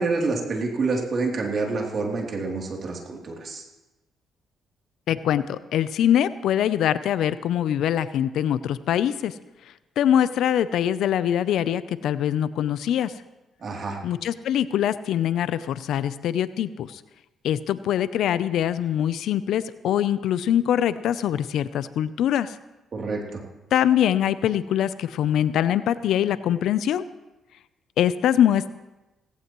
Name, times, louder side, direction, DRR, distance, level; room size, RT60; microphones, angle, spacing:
voice 1, 0.0-3.6 13.6-14.0 22.9-23.4, right 3 dB, 50° right, 0 dB, 3.0 m, -27 dB
voice 2, 5.1-9.3 10.0-13.1 14.0-16.9 17.4-22.5 23.7-27.0 28.0-28.7, left 10 dB, 80° left, 15 dB, 0.5 m, -23 dB
17.5 x 16.5 x 3.1 m, 1.0 s
cardioid pair, 90°, 0 cm